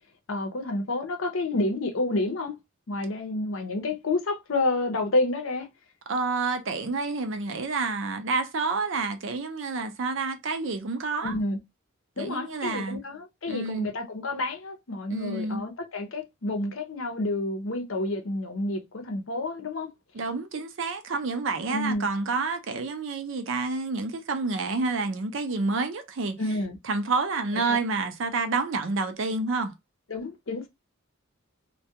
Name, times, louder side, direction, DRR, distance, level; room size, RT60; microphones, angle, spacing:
voice 1, 0.3-2.6 2.9-5.7 11.2-11.6 12.2-19.9 21.7-22.1 26.4-26.8 27.7-27.8 30.1-30.7, left 2 dB, 65° left, 0.6 m, -29 dB
voice 2, 6.1-11.3 12.2-13.0 13.5-13.9 15.1-15.6 20.1-26.4 26.9-29.7, right 3 dB, 60° right, 0.5 m, -29 dB
2.3 x 2.2 x 2.8 m
head